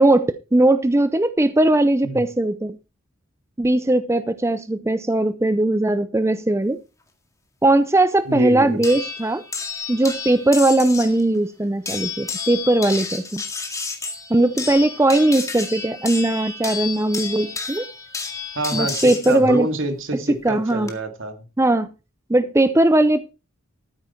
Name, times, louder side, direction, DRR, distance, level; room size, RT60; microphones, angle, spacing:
voice 1, 0.0-2.8 3.6-6.8 7.6-9.4 9.9-13.4 14.3-17.9 18.7-19.7 20.4-20.9 21.6-21.9 22.3-23.2, right 1 dB, 15° right, 0.5 m, -19 dB
voice 2, 8.3-8.8 18.6-21.4, right 1 dB, 70° right, 2.4 m, -27 dB
sound 1, 8.8-11.2 11.9-19.4 20.5-20.9, left 5 dB, 15° left, 2.0 m, -31 dB
12.5 x 9.4 x 4.4 m
head